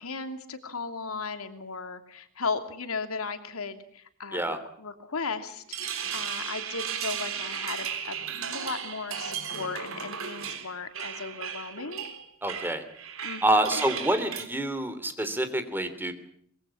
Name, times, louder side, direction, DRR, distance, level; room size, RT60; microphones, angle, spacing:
voice 1, 0.0-12.0 13.2-13.7, left 4 dB, 90° left, 7 dB, 2.8 m, -36 dB
sound 1, 5.5-14.4, right 7 dB, 70° right, 3.8 m, -35 dB
voice 2, 12.4-12.8 13.4-16.1, right 1 dB, 10° right, 10 dB, 3.1 m, -27 dB
24.5 x 22.0 x 7.2 m, 0.65 s
head